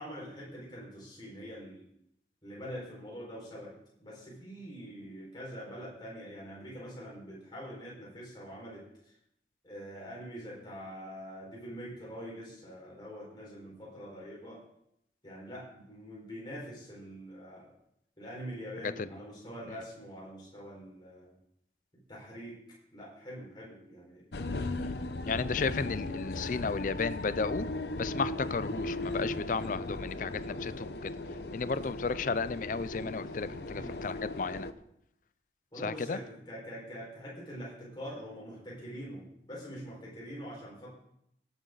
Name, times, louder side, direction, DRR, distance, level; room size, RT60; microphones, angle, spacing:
voice 1, 0.0-1.9 2.4-3.7 4.0-8.9 9.6-14.6 15.2-17.7 18.2-21.3 22.1-22.6 22.9-24.3 25.4-26.0 33.7-34.1 35.7-40.9, equal, 25° left, -5 dB, 4.9 m, -44 dB
sound 1, 24.3-34.7, left 2 dB, 65° left, 0.8 m, -37 dB
voice 2, 25.3-27.7 28.0-31.1 31.5-34.7 35.8-36.2, left 4 dB, 45° left, 15 dB, 0.4 m, -33 dB
18.0 x 9.0 x 4.0 m, 0.75 s
head